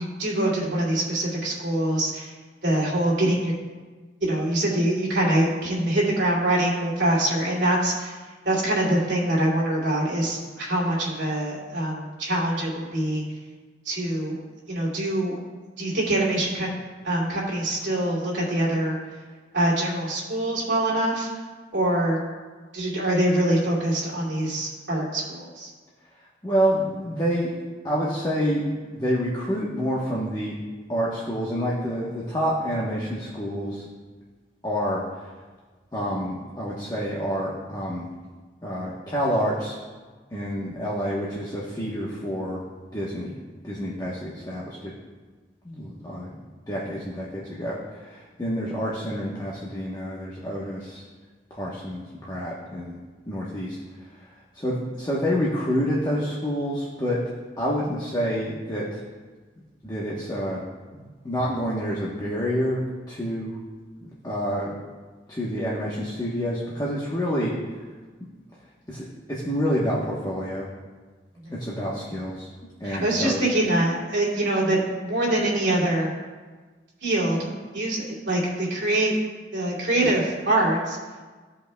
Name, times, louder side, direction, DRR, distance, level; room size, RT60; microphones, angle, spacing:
voice 1, 0.0-2.3 2.6-3.5 4.2-8.2 8.4-13.2 13.8-14.4 14.7-15.4 15.8-16.7 17.0-19.0 19.5-21.3 21.7-22.2 22.7-25.7 71.4-71.5 72.8-76.1 77.0-79.1 79.5-81.0, right 1 dB, 80° right, -4 dB, 2.7 m, -24 dB
voice 2, 26.4-27.5 27.8-28.7 28.9-30.6 30.9-33.9 34.6-35.3 35.9-38.1 38.6-39.8 40.3-42.6 42.9-43.4 43.6-44.9 45.6-46.4 46.7-51.0 51.5-53.0 53.3-57.2 57.6-59.0 59.8-60.6 60.9-63.6 64.0-64.8 65.3-67.9 68.9-70.7 71.5-72.5 72.8-73.4, equal, 20° left, -6 dB, 1.0 m, -28 dB
16.0 x 5.5 x 2.3 m, 1.4 s
head